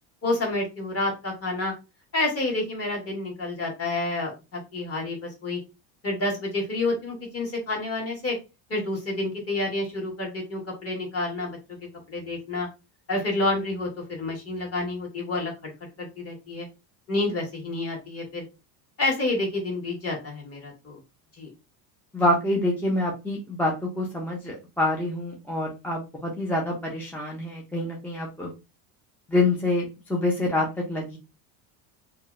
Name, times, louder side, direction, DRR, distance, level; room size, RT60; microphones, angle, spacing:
voice 1, 0.2-1.7 2.1-5.6 6.0-8.4 8.7-11.6 12.1-12.7 13.1-15.5 16.0-16.7 17.1-18.4 19.0-21.0 21.4-21.5, left 2 dB, 30° left, -1 dB, 1.4 m, -29 dB
voice 2, 22.1-28.5 29.3-31.2, left 2 dB, 5° left, -2 dB, 0.4 m, -26 dB
2.7 x 2.1 x 2.4 m, 0.27 s
supercardioid pair, 100°, 50 cm